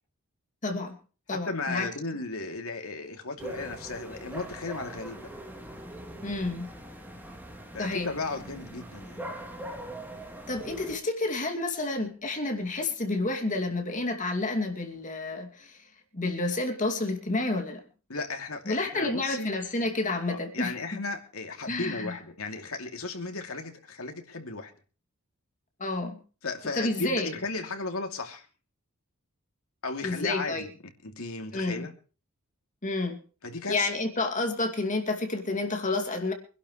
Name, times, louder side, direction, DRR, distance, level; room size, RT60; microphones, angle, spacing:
voice 1, 0.6-1.0 1.3-1.9 6.2-6.7 7.8-8.1 10.5-15.8 16.1-17.8 18.7-20.7 21.7-22.1 25.8-26.2 26.7-27.3 30.0-30.7 31.5-31.8 32.8-33.2 33.7-36.3, left 2 dB, 35° left, 4 dB, 2.5 m, -30 dB
voice 2, 1.3-5.3 7.7-9.3 18.1-19.5 20.3-24.7 26.4-28.5 29.8-30.7 31.0-31.9 33.4-33.9, left 3 dB, 80° left, 4 dB, 2.8 m, -35 dB
sound 1, 3.4-11.0, right 1 dB, 10° right, 3.0 m, -42 dB
25.0 x 11.5 x 3.2 m, 0.36 s
head